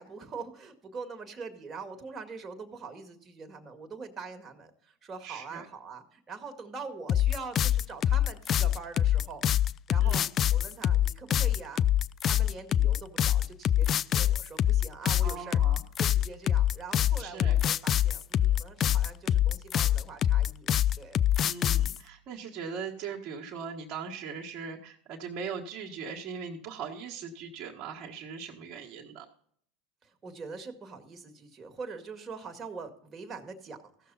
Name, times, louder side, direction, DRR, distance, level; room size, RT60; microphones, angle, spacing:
voice 1, 0.0-9.4 9.9-10.2 10.5-11.8 12.2-15.6 16.0-20.7 21.0-21.2 30.0-34.1, right 4 dB, 30° right, 5 dB, 2.0 m, -43 dB
voice 2, 5.2-5.6 10.0-10.3 15.2-15.8 17.2-17.6 21.4-29.3, right 6 dB, 50° right, -2 dB, 1.6 m, -40 dB
sound 1, 7.1-22.0, left 11 dB, 40° left, 0.3 m, -25 dB
15.5 x 6.8 x 4.1 m, 0.62 s
hypercardioid pair, 95°, 0 cm